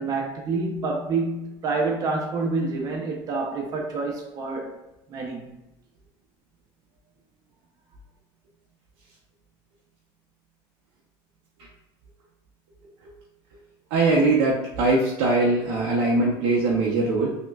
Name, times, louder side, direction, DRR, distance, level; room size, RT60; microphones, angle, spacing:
voice 1, 0.0-4.7 5.1-5.5, right 3 dB, 35° right, 0.5 m, -27 dB
voice 2, 13.9-17.4, right 2 dB, 90° right, 0.7 m, -21 dB
5.2 x 2.2 x 2.3 m
cardioid pair, 160°, 11 cm